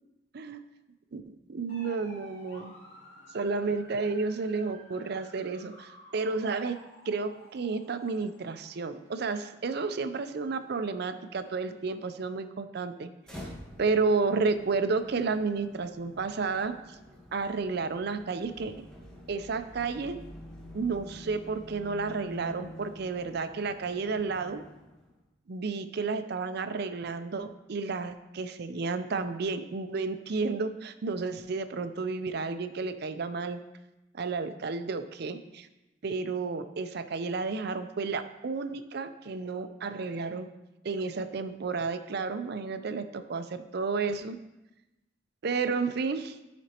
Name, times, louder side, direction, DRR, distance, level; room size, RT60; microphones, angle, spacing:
voice 1, 1.5-2.7 3.3-6.8 7.1-13.1 13.8-17.0 17.3-18.8 19.3-20.2 20.7-24.6 25.5-33.6 34.1-35.7 36.0-40.5 40.8-44.4 45.4-46.4, right 4 dB, 55° right, 10 dB, 0.5 m, -31 dB
sound 1, 1.7-12.4, left 1 dB, 85° left, 2.4 m, -54 dB
sound 2, 13.2-25.2, left 1 dB, 5° left, 1.2 m, -48 dB
13.0 x 5.1 x 2.9 m, 0.97 s
head